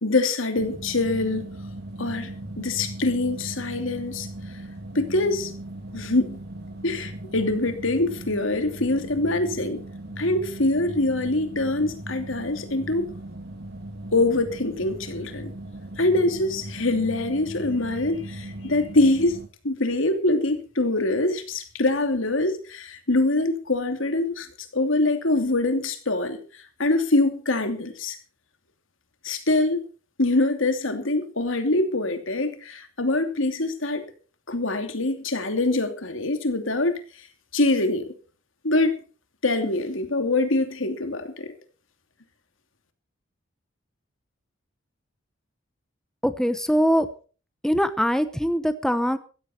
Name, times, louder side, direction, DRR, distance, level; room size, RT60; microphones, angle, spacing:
voice 1, 0.0-1.5 2.0-2.3 2.6-4.3 4.9-5.5 5.9-6.4 6.8-9.8 10.2-13.1 14.1-15.5 16.0-24.5 24.7-28.2 29.2-29.8 30.2-34.0 34.5-36.9 37.5-38.1 38.6-39.0 39.4-41.5, left 2 dB, 75° left, 2.8 m, -24 dB
sound 1, 0.6-19.5, right 1 dB, 55° right, 2.5 m, -38 dB
voice 2, 46.2-47.1 47.6-49.2, equal, 5° left, 0.9 m, -22 dB
15.5 x 14.5 x 4.4 m
head